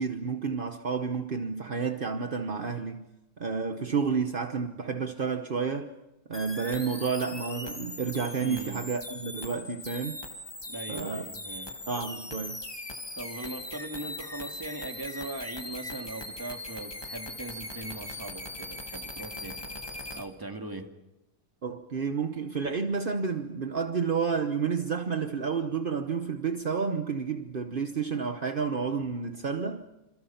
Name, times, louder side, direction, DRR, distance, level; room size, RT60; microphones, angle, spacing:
voice 1, 0.0-3.0 3.4-5.9 6.3-10.2 10.9-11.2 11.9-12.6 21.6-29.9, right 5 dB, 45° right, 0.7 m, -30 dB
sound 1, 6.3-20.2, left 1 dB, 15° left, 1.6 m, -40 dB
voice 2, 8.4-8.8 10.7-11.7 13.2-19.6 20.1-20.9, right 2 dB, 10° right, 1.9 m, -40 dB
27.5 x 27.0 x 5.8 m
omnidirectional pair, 2.3 m